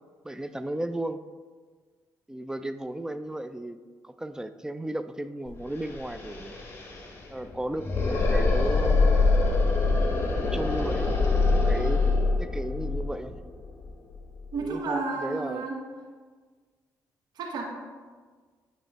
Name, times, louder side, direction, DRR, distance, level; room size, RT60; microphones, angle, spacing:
voice 1, 0.2-1.2 2.3-3.8 4.0-6.5 7.3-9.2 10.3-12.0 12.4-13.4 14.5-15.7, right 1 dB, 10° right, 11 dB, 0.4 m, -34 dB
sound 1, 5.5-5.6 5.8-14.6, left 3 dB, 30° left, 1.4 m, -25 dB
voice 2, 14.5-15.8 17.4-17.6, right 4 dB, 70° right, 1 dB, 0.9 m, -31 dB
8.7 x 3.1 x 4.1 m, 1.5 s
supercardioid pair, 60°, 7 cm